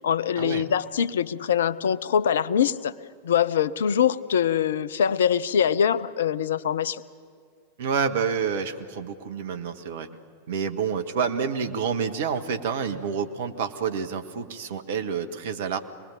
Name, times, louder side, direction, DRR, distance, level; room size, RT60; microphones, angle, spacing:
voice 1, 0.0-2.9 3.2-7.0, left 8 dB, 65° left, 17 dB, 0.6 m, -23 dB
voice 2, 7.8-10.1 10.5-15.8, right 6 dB, 55° right, 7 dB, 1.5 m, -28 dB
25.5 x 20.0 x 6.6 m, 2.1 s
figure-of-eight pair, 90°, 0 cm